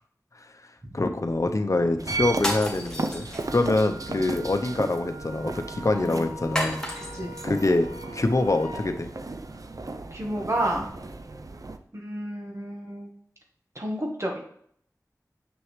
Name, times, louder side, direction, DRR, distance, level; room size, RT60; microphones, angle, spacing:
voice 1, 0.9-6.8 7.4-7.9 8.1-9.1, left 2 dB, 55° left, 7 dB, 0.7 m, -25 dB
sound 1, 2.0-11.8, right 3 dB, 65° right, 0.5 m, -35 dB
sound 2, 2.3-3.8 6.6-7.5, equal, 10° left, 1.7 m, -32 dB
Wind instrument woodwind instrument, 3.4-8.9, equal, 85° right, 1.3 m, -43 dB
voice 2, 10.1-10.9 11.9-13.1 13.7-14.4, right 1 dB, 45° right, 0 dB, 1.4 m, -30 dB
6.3 x 6.2 x 3.2 m, 0.64 s
wide cardioid pair, 45°, 6 cm